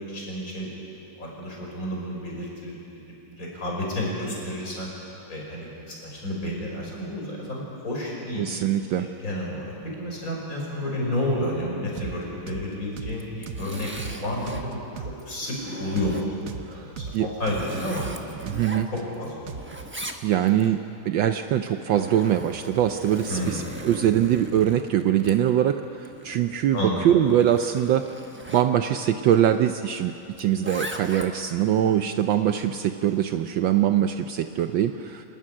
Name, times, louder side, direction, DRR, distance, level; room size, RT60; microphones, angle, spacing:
voice 1, 0.1-0.8 1.2-3.0 3.3-4.9 5.3-8.5 9.0-16.3 16.7-18.1 18.9-19.6 23.3-23.6 26.7-27.0, left 1 dB, 40° left, -3 dB, 5.9 m, -31 dB
voice 2, 8.4-9.1 16.7-16.8 17.1-17.3 18.4-18.9 20.2-25.8 26.2-28.1 28.5-30.1 30.4-35.2, right 10 dB, 70° right, 8 dB, 1.3 m, -22 dB
sound 1, 12.0-12.2 12.5-12.7 13.0-13.2 13.5-15.2 15.5-15.6 16.0-16.2 16.5-16.7 17.0-17.2 17.5-19.0 19.5-19.9, right 5 dB, 50° right, 1.1 m, -36 dB
Zipper (clothing), 13.1-14.7 15.2-16.5 17.1-19.3 19.5-20.7 21.6-28.7 30.3-31.6, right 1 dB, 10° right, 0.5 m, -39 dB
27.0 x 12.5 x 9.9 m, 2.8 s
omnidirectional pair, 2.4 m